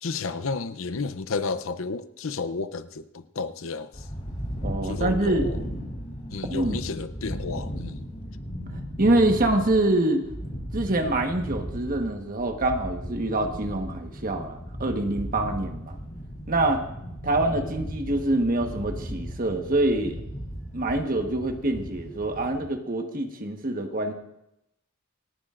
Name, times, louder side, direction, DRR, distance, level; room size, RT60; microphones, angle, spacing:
voice 1, 0.0-4.1 4.8-5.6 6.3-8.1, left 4 dB, 80° left, 0.7 m, -32 dB
sound 1, 3.9-22.6, equal, 35° left, 3.3 m, -36 dB
voice 2, 4.6-5.5 6.5-6.8 9.0-10.2 10.7-15.9 16.5-16.8 17.2-20.2 20.7-24.1, right 2 dB, 45° right, 1.4 m, -25 dB
28.0 x 9.8 x 2.6 m
head